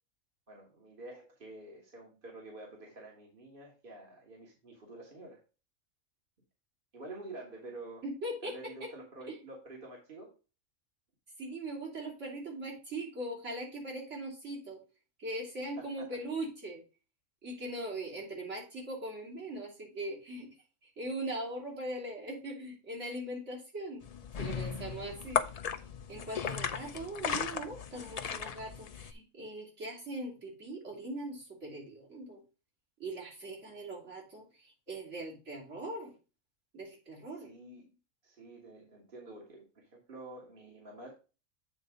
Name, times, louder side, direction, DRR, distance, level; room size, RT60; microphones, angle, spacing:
voice 1, 0.5-5.4 6.9-8.0 8.4-10.3 15.8-16.1 37.4-37.9 38.2-41.1, right 2 dB, 45° right, -1 dB, 1.8 m, -48 dB
voice 2, 8.0-8.9 9.3-9.4 11.4-14.8 15.2-16.8 17.4-20.5 20.8-24.0 24.4-25.4 26.1-32.4 33.0-36.1 36.7-37.5, right 1 dB, 65° right, -4 dB, 3.5 m, -40 dB
sound 1, 24.0-29.1, left 7 dB, 55° left, 0.4 m, -36 dB
8.2 x 4.1 x 4.9 m, 0.32 s
omnidirectional pair, 1.3 m